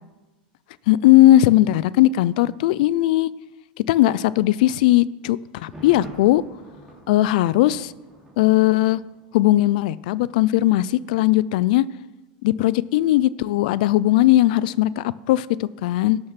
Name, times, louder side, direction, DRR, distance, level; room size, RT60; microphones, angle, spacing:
voice 1, 0.9-3.3 3.9-6.4 7.1-7.9 8.4-9.0 9.3-11.9 12.4-16.2, left 15 dB, 70° left, 19 dB, 0.4 m, -18 dB
Thunder, 5.6-9.5 9.8-9.9, right 1 dB, 5° right, 2.7 m, -44 dB
11.5 x 6.4 x 5.8 m, 1.1 s
supercardioid pair, 130°, 5 cm